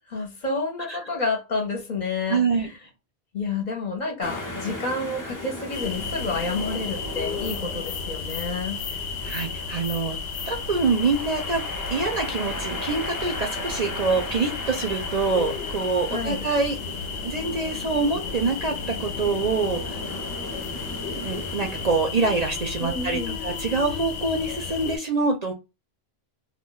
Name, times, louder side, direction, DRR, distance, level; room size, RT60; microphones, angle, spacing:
voice 1, 0.0-2.8 3.3-8.8 16.1-16.4 22.8-23.4, left 3 dB, 50° left, 0.8 m, -29 dB
voice 2, 2.3-2.7 9.2-10.2 10.5-11.6 11.9-16.8 17.2-20.0 21.1-25.5, right 4 dB, 50° right, 0.6 m, -25 dB
sound 1, 4.2-22.0, left 1 dB, 25° left, 0.5 m, -38 dB
sound 2, 5.7-25.0, left 5 dB, 80° left, 0.8 m, -33 dB
2.2 x 2.2 x 3.8 m
omnidirectional pair, 1.1 m